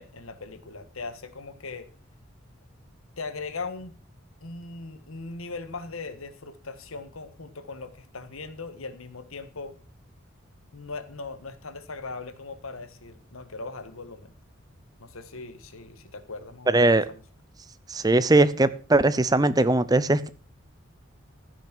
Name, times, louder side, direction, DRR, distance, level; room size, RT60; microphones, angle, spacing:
voice 1, 0.0-1.9 3.2-3.9 4.4-9.7 10.7-14.3 15.0-17.2, left 3 dB, 85° left, 11 dB, 1.5 m, -39 dB
voice 2, 16.7-17.0 17.9-20.3, right 2 dB, 20° right, 16 dB, 0.6 m, -20 dB
15.5 x 6.3 x 6.1 m, 0.38 s
head